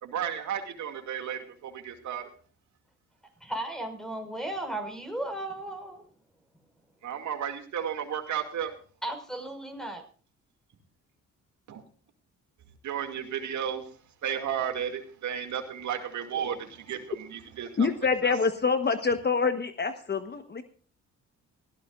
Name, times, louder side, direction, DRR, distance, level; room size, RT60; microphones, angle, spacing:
voice 1, 0.0-2.3 7.0-8.7 11.7-11.8 12.8-13.9 14.2-18.4, right 8 dB, 70° right, 6 dB, 2.4 m, -33 dB
voice 2, 3.4-6.0 9.0-10.0, right 1 dB, ahead, 6 dB, 5.4 m, -35 dB
voice 3, 17.8-20.6, left 5 dB, 35° left, 9 dB, 1.2 m, -26 dB
19.5 x 15.5 x 2.5 m, 0.41 s
cardioid pair, 90°, 30 cm